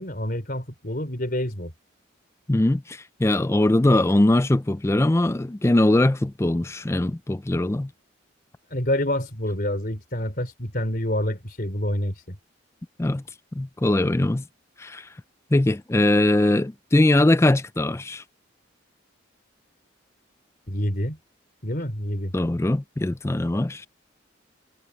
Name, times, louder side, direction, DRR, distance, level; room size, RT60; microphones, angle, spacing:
voice 1, 0.0-1.7 8.7-12.4 20.7-21.2 21.6-22.3, left 1 dB, 45° left, 4.1 m, -27 dB
voice 2, 2.5-7.9 13.0-13.2 13.6-14.4 14.8-15.1 15.5-18.2 22.3-23.9, left 1 dB, 15° left, 0.4 m, -21 dB
head